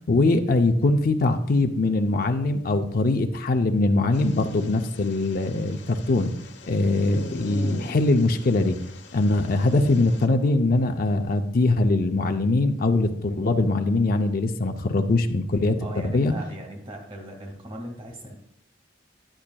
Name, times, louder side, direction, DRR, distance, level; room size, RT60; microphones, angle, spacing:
voice 1, 0.1-6.3 6.7-8.8 9.1-15.8 16.1-16.3, left 2 dB, 50° left, 6 dB, 0.5 m, -22 dB
sound 1, 4.1-10.3, left 2 dB, 70° left, 1.0 m, -42 dB
voice 2, 15.8-18.4, right 1 dB, 35° right, 1 dB, 1.8 m, -38 dB
10.0 x 9.6 x 2.3 m, 0.75 s
head